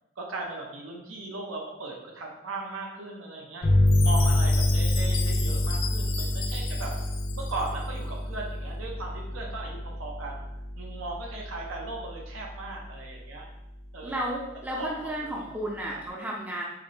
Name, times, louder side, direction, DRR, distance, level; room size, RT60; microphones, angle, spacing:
voice 1, 0.2-3.7 4.0-6.9 7.3-10.5 10.7-13.5 13.9-14.2 14.8-14.9 15.9-16.0, right 3 dB, 80° right, 0 dB, 0.7 m, -37 dB
sound 1, 3.6-12.9, left 1 dB, 50° left, 0.8 m, -27 dB
Chime, 3.9-7.9, left 6 dB, 85° left, 0.5 m, -36 dB
voice 2, 14.0-16.6, right 1 dB, 10° right, -3 dB, 0.4 m, -33 dB
4.9 x 2.1 x 3.2 m, 0.89 s
head